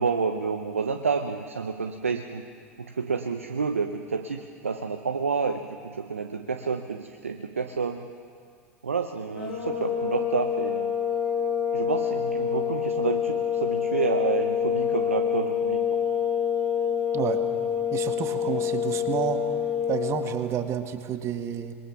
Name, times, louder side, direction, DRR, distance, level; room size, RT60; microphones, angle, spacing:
voice 1, 0.0-2.5 2.8-8.1 8.8-10.9 11.7-16.0, right 5 dB, 85° right, 7 dB, 0.8 m, -29 dB
sound 1, 9.4-20.4, left 8 dB, 70° left, 7.3 m, -27 dB
voice 2, 17.9-19.4 19.9-21.7, right 9 dB, 40° right, 8 dB, 1.6 m, -30 dB
26.0 x 22.0 x 5.9 m, 2.4 s
figure-of-eight pair, 80°, 7 cm